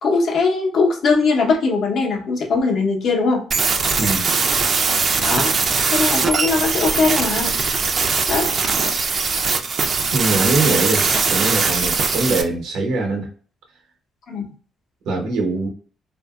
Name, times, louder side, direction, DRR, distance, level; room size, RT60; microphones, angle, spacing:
voice 1, 0.0-3.5 5.2-5.5 5.9-7.5 8.3-8.5 14.3-14.4, left 4 dB, 65° left, 0 dB, 0.8 m, -20 dB
sound 1, 3.5-12.4, right 4 dB, 45° right, 0.4 m, -20 dB
voice 2, 4.0-4.3 10.1-13.3 15.0-15.7, right 3 dB, 85° right, 1 dB, 0.9 m, -22 dB
2.7 x 2.6 x 2.3 m, 0.44 s
cardioid pair, 90°, 0 cm